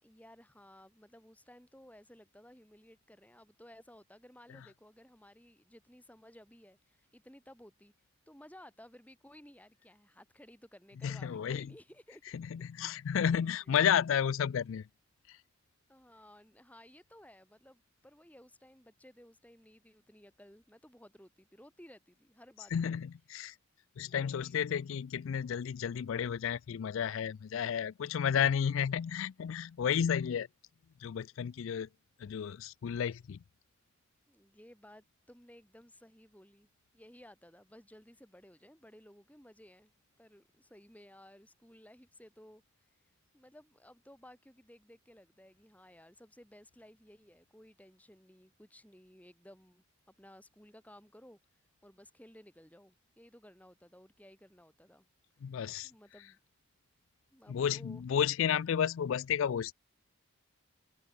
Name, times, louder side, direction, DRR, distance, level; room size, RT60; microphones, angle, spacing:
voice 1, 0.0-7.9 8.3-12.4 13.3-14.2 15.9-22.9 24.1-24.6 34.3-36.7 36.9-39.9 40.2-42.6 42.9-43.0 43.3-51.4 51.8-55.1 55.4-55.5 55.8-56.4 57.3-58.1, equal, 5° left, 6.1 m, -57 dB
voice 2, 11.0-11.7 12.3-14.8 22.7-23.5 24.0-30.5 31.0-31.9 32.2-33.4 55.4-55.9 57.5-59.7, left 8 dB, 65° left, 0.3 m, -32 dB
head